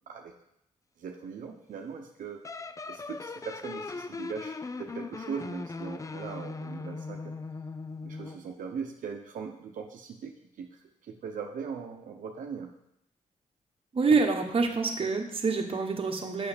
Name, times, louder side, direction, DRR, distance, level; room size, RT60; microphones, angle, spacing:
voice 1, 1.0-7.3 8.0-10.7 11.1-12.7, right 6 dB, 75° right, 2 dB, 0.8 m, -40 dB
sound 1, 2.4-8.5, left 3 dB, 25° left, 0.4 m, -39 dB
voice 2, 13.9-16.5, right 4 dB, 40° right, 3 dB, 1.2 m, -26 dB
7.1 x 6.3 x 5.1 m, 0.78 s
cardioid pair, 80°, 14 cm